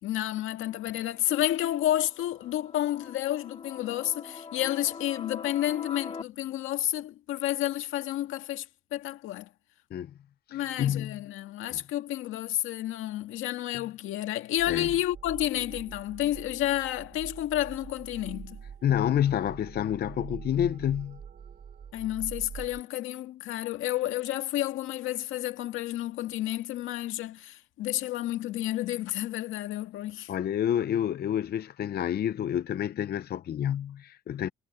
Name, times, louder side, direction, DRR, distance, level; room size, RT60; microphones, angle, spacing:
voice 1, 0.0-8.7 8.9-9.5 10.5-18.6 21.9-30.3, left 13 dB, 90° left, 1.9 m, -30 dB
sound 1, 0.7-6.2, left 5 dB, 30° left, 2.3 m, -44 dB
voice 2, 10.5-11.2 11.7-11.8 14.7-14.9 18.8-21.2 30.3-34.5, left 10 dB, 55° left, 0.6 m, -28 dB
sound 2, 14.6-22.8, right 7 dB, 50° right, 3.1 m, -45 dB
cardioid pair, 90°, 20 cm